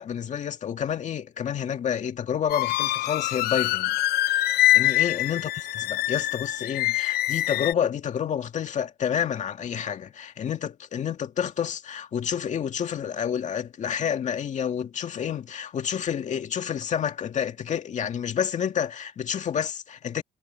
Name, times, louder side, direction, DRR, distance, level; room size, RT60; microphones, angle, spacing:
voice 1, 0.0-4.0 4.7-5.5 5.8-20.2, left 8 dB, 45° left, 2.1 m, -29 dB
sound 1, 2.5-7.7, left 15 dB, 70° left, 0.5 m, -24 dB
cardioid pair, 110°, 17 cm